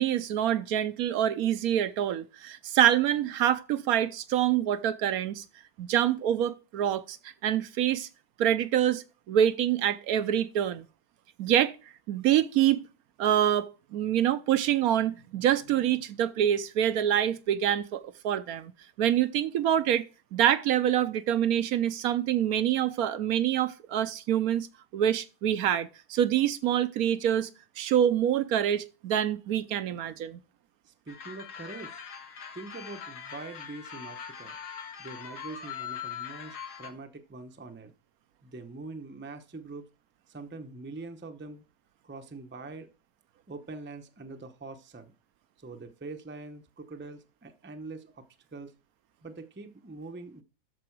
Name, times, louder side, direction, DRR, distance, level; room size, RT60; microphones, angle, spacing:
voice 1, 0.0-5.4 5.8-7.2 7.4-8.1 8.4-10.9 11.4-11.7 12.1-12.9 13.2-18.7 19.0-20.1 20.3-24.7 24.9-27.5 27.8-30.4, right 10 dB, 75° right, 1.1 m, -26 dB
voice 2, 30.8-32.0 32.5-34.6 35.0-37.9 38.4-39.9 40.3-41.6 42.0-42.9 43.5-45.1 45.6-48.7 49.2-50.4, right 3 dB, 10° right, 0.5 m, -43 dB
sound 1, 31.1-36.9, left 8 dB, 90° left, 1.8 m, -41 dB
12.5 x 4.7 x 4.6 m
omnidirectional pair, 1.6 m